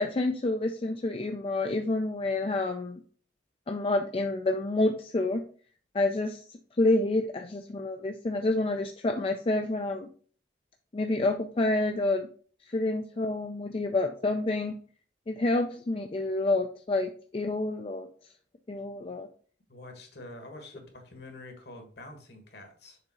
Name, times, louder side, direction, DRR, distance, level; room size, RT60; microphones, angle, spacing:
voice 1, 0.0-3.0 3.7-5.4 5.9-6.5 6.8-10.1 10.9-12.3 12.7-14.8 15.3-18.1 18.7-19.3, left 2 dB, 30° left, 5 dB, 0.4 m, -28 dB
voice 2, 19.7-23.0, left 2 dB, 60° left, 5 dB, 1.5 m, -46 dB
6.7 x 3.6 x 4.2 m, 0.43 s
head